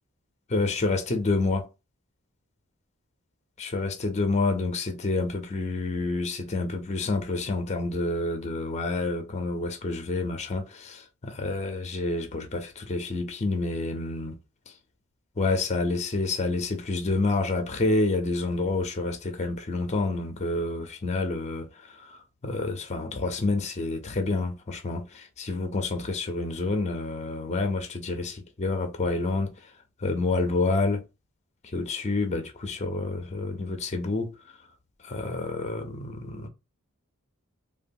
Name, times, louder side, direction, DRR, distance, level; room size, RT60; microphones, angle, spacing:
voice 1, 0.5-1.7 3.6-14.4 15.4-22.2 22.4-29.5 30.0-31.0 31.7-34.3 35.0-36.5, left 3 dB, 30° left, 0.5 m, -28 dB
3.0 x 2.2 x 2.6 m
head